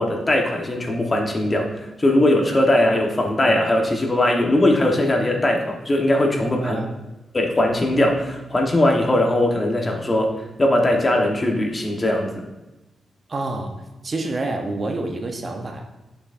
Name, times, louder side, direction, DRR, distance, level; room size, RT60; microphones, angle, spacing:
voice 1, 0.0-1.7 2.0-6.8 7.3-10.3 10.6-12.3, left 1 dB, 25° left, 1 dB, 1.2 m, -20 dB
voice 2, 6.6-7.0 13.3-13.7 14.0-15.8, right 2 dB, 40° right, 3 dB, 0.8 m, -27 dB
8.0 x 7.0 x 2.6 m, 1.0 s
cardioid pair, 100°, 0 cm